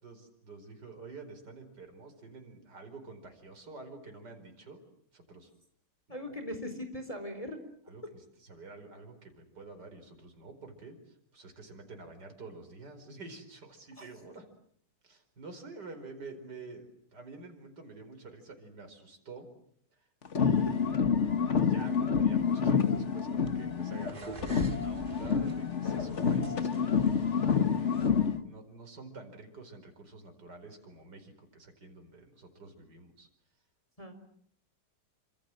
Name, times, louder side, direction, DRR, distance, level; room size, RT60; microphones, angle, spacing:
voice 1, 0.0-4.8 5.1-5.5 6.1-6.4 7.9-14.5 15.0-19.5 20.0-20.1 20.4-20.9 21.5-28.0 28.4-33.3, right 3 dB, 50° right, 5 dB, 5.3 m, -48 dB
voice 2, 6.1-7.6 14.0-14.1 34.0-34.2, left 1 dB, 15° left, 7 dB, 4.3 m, -39 dB
sound 1, 20.2-24.1 24.4-28.4, left 6 dB, 40° left, 1.5 m, -28 dB
sound 2, 22.9-28.1, right 2 dB, 25° right, 2.1 m, -47 dB
28.0 x 26.5 x 7.7 m, 0.66 s
omnidirectional pair, 2.3 m